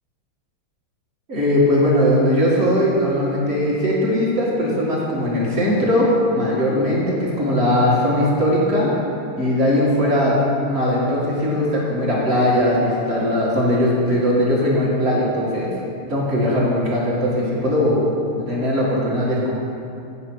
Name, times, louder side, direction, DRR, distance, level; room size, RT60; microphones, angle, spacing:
voice 1, 1.3-6.1 6.3-8.9 9.4-10.4 10.7-15.7 16.1-18.0 18.4-19.5, left 1 dB, 30° right, -6 dB, 1.9 m, -19 dB
9.0 x 4.9 x 6.2 m, 2.7 s
omnidirectional pair, 2.4 m